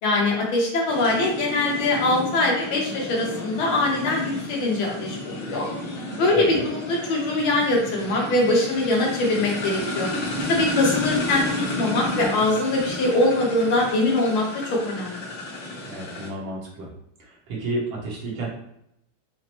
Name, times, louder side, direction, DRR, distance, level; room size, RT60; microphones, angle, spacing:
voice 1, 0.0-5.7 6.2-10.1 10.5-11.4 11.8-14.4 14.7-15.3, left 2 dB, 85° left, -1 dB, 1.9 m, -22 dB
sound 1, 0.9-16.3, left 1 dB, 65° left, 1.8 m, -32 dB
voice 2, 6.3-6.7 15.9-16.9 17.2-18.5, right 2 dB, 75° right, -4 dB, 1.9 m, -31 dB
5.7 x 2.0 x 3.0 m, 0.77 s
omnidirectional pair, 2.2 m